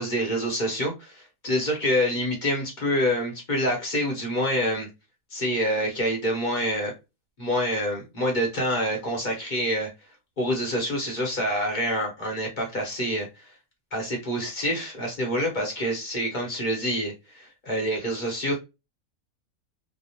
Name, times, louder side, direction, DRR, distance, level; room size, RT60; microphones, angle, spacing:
voice 1, 0.0-4.9 5.3-6.9 7.4-9.9 10.4-13.5 13.9-18.6, equal, 40° left, 0.8 m, -27 dB
2.8 x 2.1 x 2.8 m
omnidirectional pair, 1.5 m